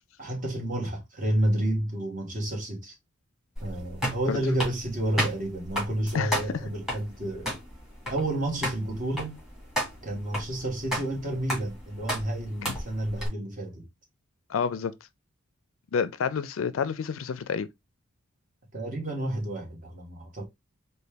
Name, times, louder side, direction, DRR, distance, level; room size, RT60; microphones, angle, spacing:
voice 1, 0.2-2.9 3.6-7.5 8.1-9.4 10.0-13.8 18.7-20.5, right 1 dB, 35° right, 1.2 m, -30 dB
sound 1, 3.6-13.3, equal, ahead, 1.7 m, -34 dB
voice 2, 14.5-15.0 15.9-17.7, left 6 dB, 70° left, 0.4 m, -29 dB
4.1 x 2.2 x 3.3 m
head